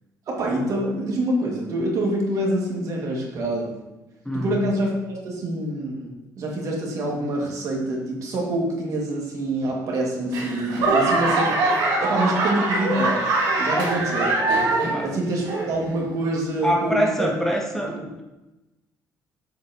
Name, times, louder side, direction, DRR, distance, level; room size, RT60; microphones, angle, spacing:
voice 1, 0.3-3.8 4.3-6.1 6.4-11.6 12.0-13.2 13.6-14.4 15.0-17.3 17.7-18.1, right 1 dB, 55° right, -2 dB, 2.2 m, -26 dB
voice 2, 4.2-4.6 14.8-15.1 16.6-18.2, equal, 5° left, 0 dB, 0.9 m, -25 dB
Laughter / Clapping / Crowd, 10.3-15.1 15.4-16.0 16.5-16.6, right 2 dB, 90° right, 1.8 m, -22 dB
7.7 x 7.1 x 3.0 m, 1.0 s
cardioid pair, 125°, 7 cm